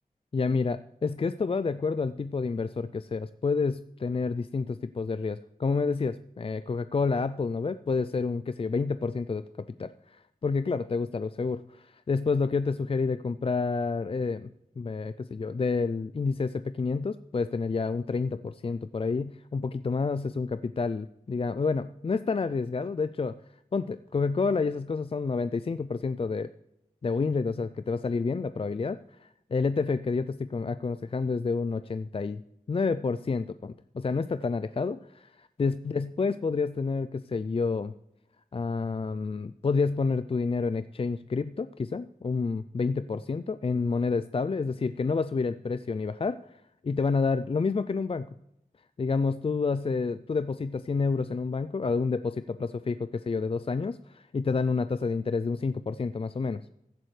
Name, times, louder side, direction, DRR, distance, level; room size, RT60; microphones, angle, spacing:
voice 1, 0.3-14.5 14.8-23.4 23.7-26.5 27.0-29.0 29.5-32.4 32.7-37.9 38.5-46.4 46.8-48.3 49.0-56.7, left 4 dB, 40° left, 13 dB, 0.4 m, -29 dB
15.5 x 8.8 x 3.3 m, 0.82 s
wide cardioid pair, 65°, 15 cm